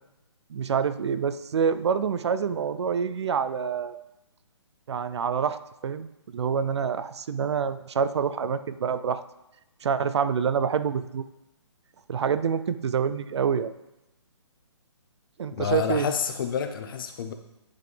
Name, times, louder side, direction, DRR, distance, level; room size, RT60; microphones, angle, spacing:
voice 1, 0.5-4.0 4.9-5.6 5.8-6.1 6.3-9.2 9.8-11.2 12.1-13.7 15.4-16.1, right 7 dB, 65° right, 13 dB, 0.4 m, -26 dB
voice 2, 15.5-17.3, left 7 dB, 45° left, 8 dB, 0.7 m, -29 dB
9.6 x 4.1 x 3.3 m, 0.95 s
hypercardioid pair, 145°, 15 cm